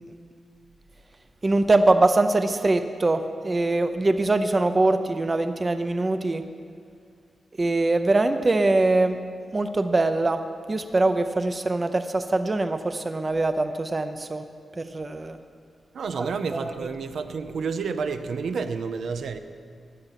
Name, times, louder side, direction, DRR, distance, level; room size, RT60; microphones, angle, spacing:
voice 1, 1.4-6.4 7.6-9.2 9.5-10.4 10.7-14.4 14.8-15.4 16.1-16.9, right 2 dB, 25° right, 9 dB, 0.5 m, -23 dB
voice 2, 15.9-19.4, right 5 dB, 70° right, 9 dB, 0.7 m, -30 dB
16.0 x 11.0 x 5.8 m, 2.2 s
wide cardioid pair, 160°, 0 cm